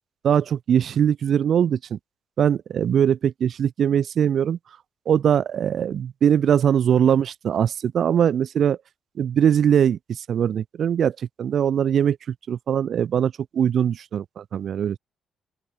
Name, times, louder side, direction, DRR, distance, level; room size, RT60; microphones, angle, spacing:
voice 1, 0.2-2.0 2.4-4.6 5.1-8.8 9.2-15.0, right 8 dB, 60° right, 0.4 m, -21 dB
open air
cardioid pair, 90°, 0 cm